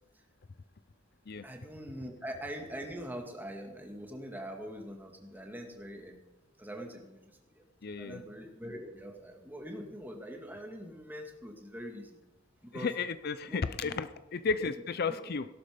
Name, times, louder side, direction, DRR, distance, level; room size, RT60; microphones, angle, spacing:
voice 1, 1.4-6.2 6.6-7.6 8.0-12.2 12.6-12.9 13.5-14.0 14.6-14.7 15.1-15.2, equal, 10° right, 2 dB, 2.0 m, -43 dB
voice 2, 7.8-8.2 12.7-15.5, left 5 dB, 50° left, 13 dB, 0.5 m, -33 dB
17.0 x 12.0 x 5.1 m, 1.0 s
head